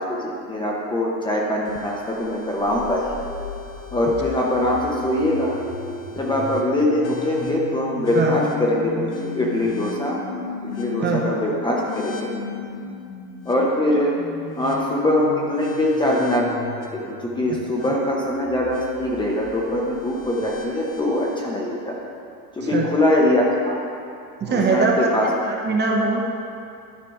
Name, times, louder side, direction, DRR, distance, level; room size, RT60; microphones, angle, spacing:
voice 1, 0.0-3.1 3.9-5.5 6.1-9.1 9.3-10.2 10.8-12.3 13.5-14.2 14.6-16.5 16.9-22.0 22.6-23.8 24.5-25.3, left 1 dB, 10° left, -3 dB, 0.7 m, -22 dB
sound 1, 1.6-21.4, left 3 dB, 65° left, 1.3 m, -35 dB
voice 2, 24.4-25.1 25.4-26.2, right 4 dB, 20° right, 0 dB, 0.8 m, -21 dB
12.0 x 4.9 x 4.7 m, 2.5 s
supercardioid pair, 135°, 47 cm